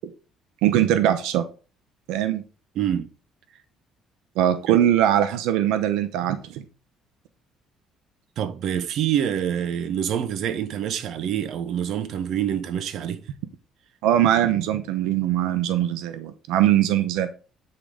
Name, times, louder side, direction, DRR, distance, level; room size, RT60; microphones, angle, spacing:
voice 1, 0.6-1.5 2.1-2.4 4.4-6.6 14.0-17.3, right 11 dB, 90° right, 0.8 m, -21 dB
voice 2, 2.7-3.1 4.7-4.8 8.4-13.2, right 9 dB, 60° right, 0.9 m, -26 dB
8.8 x 3.9 x 4.9 m
cardioid pair, 135°, 0 cm